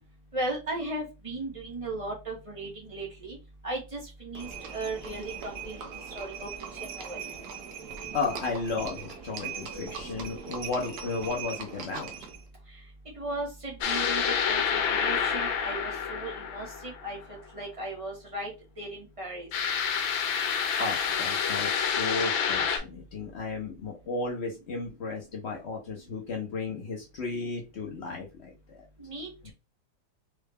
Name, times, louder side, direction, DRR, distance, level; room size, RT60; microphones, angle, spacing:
voice 1, 0.3-3.4 3.6-7.3 13.0-17.2 17.5-18.5 18.8-19.5 29.0-29.5, right 2 dB, 30° right, -1 dB, 0.6 m, -36 dB
Livestock farm animals working animals, 4.3-12.5, right 6 dB, 65° right, 1.1 m, -40 dB
voice 2, 8.1-12.1 20.8-28.8, left 3 dB, 85° left, -1 dB, 0.5 m, -34 dB
sound 1, 13.8-17.2 19.5-22.8, left 7 dB, 70° left, 1.4 m, -28 dB
4.6 x 2.2 x 3.4 m, 0.28 s
omnidirectional pair, 2.3 m